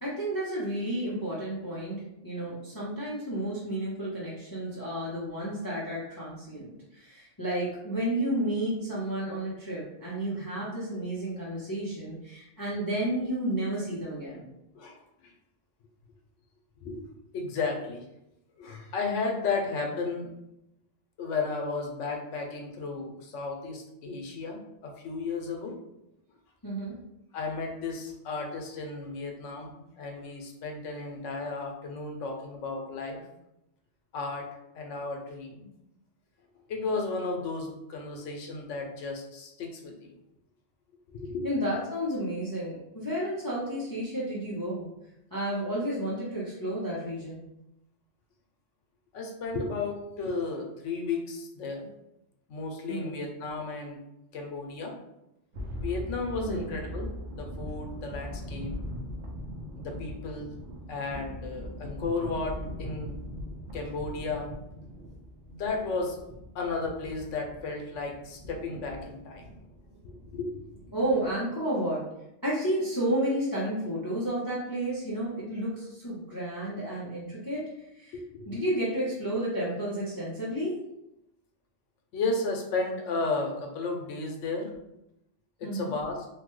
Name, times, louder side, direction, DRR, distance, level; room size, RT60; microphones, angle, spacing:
voice 1, 0.0-14.5 26.6-26.9 41.4-44.9 45.3-47.4 52.9-53.2 56.4-56.7 70.9-72.1 72.4-77.6 77.9-78.2 78.5-80.7 85.6-85.9, right 1 dB, 25° left, -7 dB, 0.5 m, -31 dB
voice 2, 17.3-18.0 18.6-20.3 21.2-25.7 27.3-33.2 34.1-34.4 34.7-35.6 36.7-40.1 41.1-41.5 49.1-51.9 52.5-54.0 54.3-54.9 55.8-58.7 59.8-60.5 60.9-62.5 62.8-63.2 63.7-64.5 65.5-66.2 66.5-69.5 70.0-70.6 78.1-78.6 82.1-84.7 85.6-86.3, left 3 dB, 85° left, 2 dB, 1.0 m, -33 dB
sound 1, 55.5-71.3, equal, 70° right, 0.9 m, -41 dB
3.1 x 2.2 x 3.0 m, 0.86 s
omnidirectional pair, 1.2 m